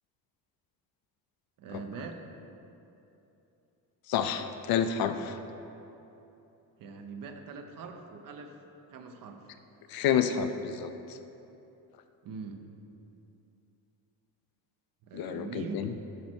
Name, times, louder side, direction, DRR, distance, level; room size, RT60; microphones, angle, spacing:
voice 1, 1.6-2.2 6.8-8.6 8.9-9.5 12.2-12.6 15.0-15.9, right 4 dB, 55° right, 5 dB, 0.7 m, -42 dB
voice 2, 4.1-5.4 9.9-11.2 15.1-15.9, left 8 dB, 65° left, 9 dB, 0.5 m, -29 dB
12.0 x 4.3 x 4.4 m, 2.9 s
cardioid pair, 150°, 40 cm